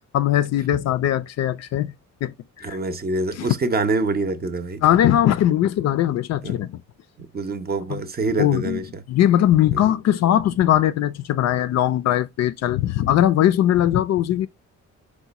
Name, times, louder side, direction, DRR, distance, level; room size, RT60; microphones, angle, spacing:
voice 1, 0.1-1.9 2.2-2.8 3.3-3.5 4.8-6.8 7.9-8.0 8.4-8.8 9.1-14.5, left 12 dB, 60° left, 0.4 m, -20 dB
voice 2, 2.6-4.8 6.4-6.6 7.2-8.8, right 3 dB, 30° right, 0.6 m, -25 dB
4.7 x 2.2 x 4.0 m
cardioid pair, 90°, 30 cm